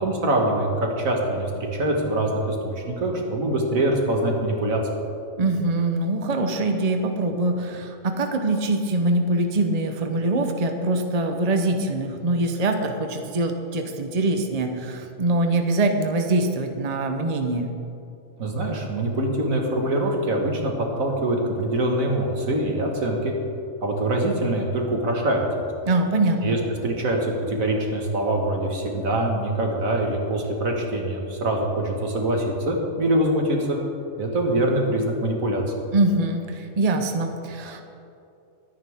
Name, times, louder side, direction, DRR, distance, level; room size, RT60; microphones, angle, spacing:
voice 1, 0.0-5.0 18.4-23.3 23.8-25.4 26.4-33.8 34.2-35.8, right 1 dB, 85° right, 1 dB, 2.2 m, -24 dB
voice 2, 5.4-17.7 25.8-26.6 35.9-37.8, right 2 dB, 30° right, 5 dB, 1.0 m, -23 dB
22.5 x 9.8 x 3.6 m, 2.7 s
omnidirectional pair, 1.4 m